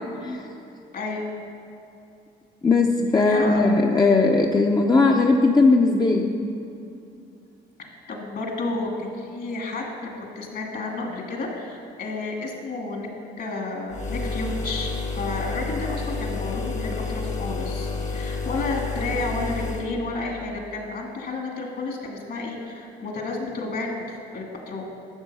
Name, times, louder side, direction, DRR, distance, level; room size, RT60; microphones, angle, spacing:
voice 1, 0.9-1.2 3.3-3.7 8.1-9.8 10.3-13.1 13.4-24.8, left 3 dB, 55° left, 0 dB, 2.5 m, -31 dB
voice 2, 2.6-6.3, left 3 dB, 20° left, 1 dB, 0.7 m, -18 dB
sound 1, 13.9-19.9, left 4 dB, 40° left, 1.3 m, -30 dB
12.5 x 6.8 x 5.6 m, 2.6 s
cardioid pair, 90°, 20 cm